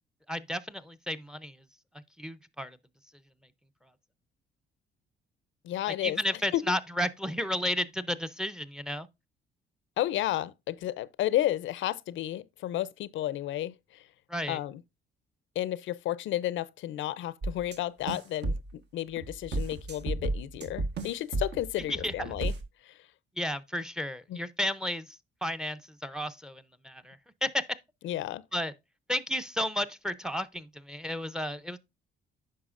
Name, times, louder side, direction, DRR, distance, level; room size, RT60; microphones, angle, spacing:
voice 1, 0.3-1.6 2.2-2.8 5.9-9.1 14.3-14.6 21.9-22.1 23.4-25.1 25.4-27.6 28.5-28.7 29.1-31.8, left 1 dB, 5° right, 0.5 m, -33 dB
voice 2, 5.6-6.2 6.5-6.6 10.0-14.0 14.5-14.8 15.6-22.5 22.9-23.0 24.3-24.4 28.0-28.4, left 13 dB, 75° left, 0.5 m, -32 dB
sound 1, 17.4-17.8 18.1-18.8 19.2-22.6, right 2 dB, 60° right, 1.2 m, -33 dB
9.4 x 5.6 x 2.4 m
cardioid pair, 90°, 20 cm